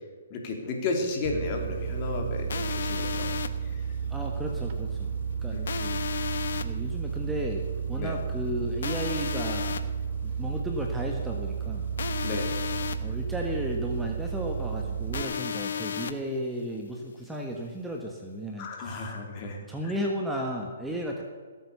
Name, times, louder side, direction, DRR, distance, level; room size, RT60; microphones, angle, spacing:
voice 1, 0.3-3.3 3.7-3.9 5.5-6.0 8.0-8.1 12.2-12.5 18.6-19.9, left 3 dB, 35° left, 1 dB, 3.2 m, -33 dB
sound 1, 1.2-15.2, right 7 dB, 45° right, 1.4 m, -32 dB
sound 2, 2.5-3.5 5.7-6.6 8.8-9.8 12.0-13.0 15.1-16.1, left 7 dB, 70° left, 1.0 m, -32 dB
voice 2, 4.1-5.1 5.4-5.6 6.6-9.9 10.2-11.9 13.0-19.1 19.7-21.2, equal, 5° right, 0 dB, 1.4 m, -34 dB
17.5 x 8.3 x 6.9 m, 1.5 s
hypercardioid pair, 145°, 0 cm